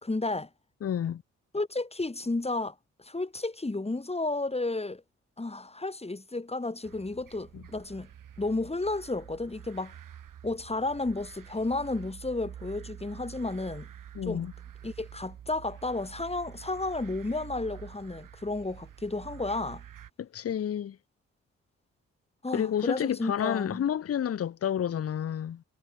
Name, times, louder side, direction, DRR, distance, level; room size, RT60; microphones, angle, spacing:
voice 1, 0.0-0.5 1.5-5.0 5.4-8.1 8.4-9.9 10.4-13.9 14.3-14.5 14.8-19.8 22.4-23.8, left 2 dB, 15° left, 2.0 m, -32 dB
voice 2, 0.8-1.2 7.5-7.6 14.1-14.5 20.2-21.0 22.5-25.6, left 9 dB, 40° left, 0.8 m, -30 dB
sound 1, 6.8-20.1, right 9 dB, 65° right, 4.0 m, -47 dB
hypercardioid pair, 40°, 35 cm